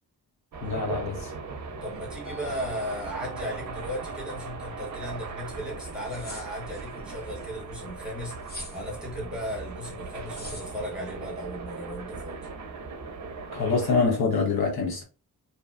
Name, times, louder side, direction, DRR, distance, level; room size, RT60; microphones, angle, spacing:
sound 1, 0.5-14.1, right 4 dB, 50° right, 0.4 m, -38 dB
voice 1, 0.6-1.3 13.5-15.0, left 4 dB, 75° left, 0.7 m, -25 dB
voice 2, 1.8-8.4 8.7-12.4, equal, ahead, 1.0 m, -36 dB
Musical instrument, 2.2-8.6, right 1 dB, 50° left, 1.0 m, -47 dB
sound 2, 5.9-6.8 8.4-8.8 10.3-10.7, left 1 dB, 25° left, 0.7 m, -41 dB
2.6 x 2.1 x 2.3 m
wide cardioid pair, 170°, 38 cm